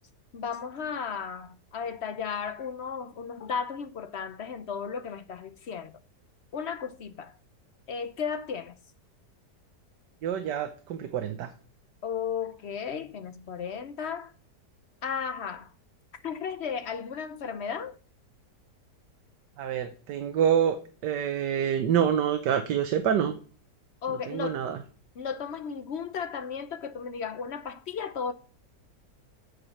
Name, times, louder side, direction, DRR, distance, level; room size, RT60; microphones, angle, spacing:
voice 1, 0.3-5.9 6.5-7.4 7.9-8.8 12.0-14.3 15.0-15.7 16.1-18.0 24.0-24.7 25.2-28.3, left 6 dB, 60° left, 0.7 m, -34 dB
voice 2, 10.2-11.5 19.6-20.8 21.0-23.3 24.1-24.8, right 9 dB, 85° right, 1.5 m, -27 dB
8.4 x 5.1 x 7.1 m
omnidirectional pair, 1.8 m